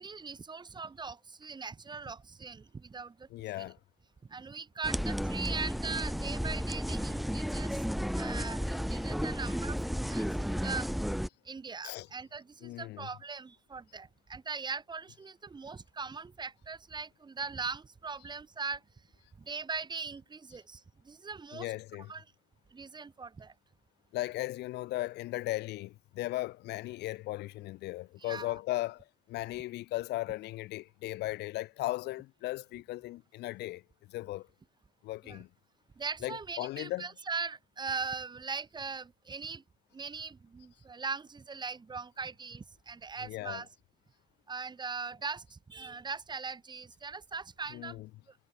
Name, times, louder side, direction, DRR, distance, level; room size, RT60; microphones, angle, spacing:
voice 1, 0.0-3.3 3.5-3.7 4.3-7.8 8.1-10.9 11.4-18.8 19.4-21.7 22.1-22.2 22.7-23.5 28.2-28.5 35.2-35.4 36.0-39.6 39.9-43.7 44.5-48.0 48.3-48.4, right 4 dB, 25° right, 3.7 m, -40 dB
voice 2, 3.3-3.8 11.8-12.1 12.6-13.1 21.5-22.1 24.1-33.8 34.1-34.5 35.0-35.5 36.2-37.1 43.2-43.6 47.7-48.1, left 17 dB, 80° left, 1.9 m, -37 dB
sound 1, 4.8-11.3, equal, ahead, 3.8 m, -33 dB
cardioid pair, 110°, 17 cm